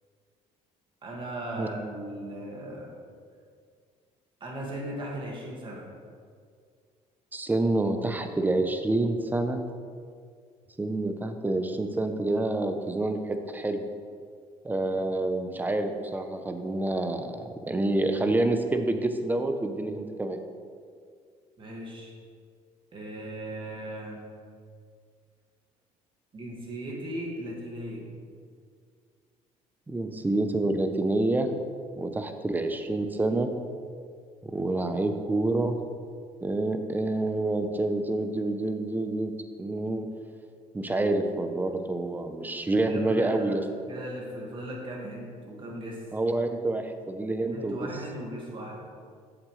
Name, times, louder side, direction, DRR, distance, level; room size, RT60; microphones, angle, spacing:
voice 1, 1.0-2.9 4.4-5.9 21.6-22.1 22.9-24.2 26.3-28.1 42.8-43.6 43.9-46.0 47.5-48.9, right 1 dB, 35° right, -2 dB, 2.0 m, -37 dB
voice 2, 7.3-9.6 10.8-13.8 14.6-20.4 29.9-31.5 32.0-33.5 34.4-35.8 36.4-40.1 40.7-43.6 46.1-47.9, right 2 dB, 15° right, 7 dB, 0.6 m, -28 dB
8.0 x 7.3 x 3.2 m, 2.1 s
cardioid pair, 105°, 14 cm